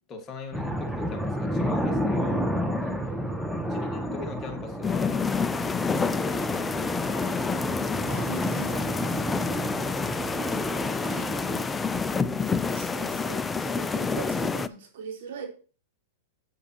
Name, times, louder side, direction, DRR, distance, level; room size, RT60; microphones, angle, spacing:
voice 1, 0.1-2.5 3.6-7.4 9.7-11.3, left 4 dB, 30° left, 3 dB, 2.0 m, -41 dB
sound 1, 0.5-11.6, equal, 5° right, 1.0 m, -31 dB
voice 2, 2.8-3.5 8.1-9.3 11.0-15.5, right 6 dB, 60° right, 0 dB, 3.7 m, -42 dB
sound 2, 4.8-14.7, left 4 dB, 15° left, 0.5 m, -28 dB
10.0 x 8.5 x 3.0 m, 0.37 s
hypercardioid pair, 110°, 0 cm